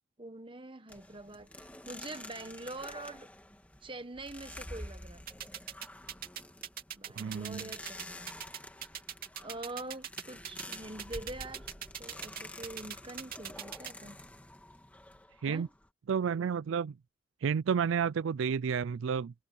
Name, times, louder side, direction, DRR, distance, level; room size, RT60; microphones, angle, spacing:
voice 1, 0.2-3.3 3.8-5.3 7.0-8.4 9.4-11.7 12.0-14.2 15.5-15.7, right 2 dB, 25° right, 1.4 m, -44 dB
sound 1, 0.9-15.9, left 1 dB, 10° left, 1.9 m, -49 dB
sound 2, 5.3-13.9, right 9 dB, 50° right, 3.2 m, -40 dB
voice 2, 7.2-7.6 15.4-15.7 16.1-16.9 17.4-19.3, right 6 dB, 75° right, 0.4 m, -31 dB
head